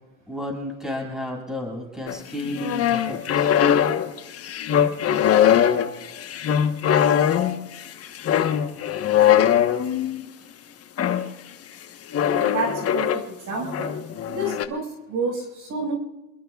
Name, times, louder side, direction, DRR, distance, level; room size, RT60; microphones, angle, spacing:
voice 1, 0.3-3.5, left 1 dB, ahead, 0 dB, 6.9 m, -32 dB
Squeaky Glass Door, 2.1-10.2 11.0-11.3 12.1-13.3 13.6-14.6, left 9 dB, 30° left, 1.2 m, -21 dB
voice 2, 12.4-13.9 14.2-15.9, right 2 dB, 40° right, 1 dB, 5.2 m, -29 dB
29.0 x 21.0 x 2.4 m, 1.1 s
supercardioid pair, 125°, 47 cm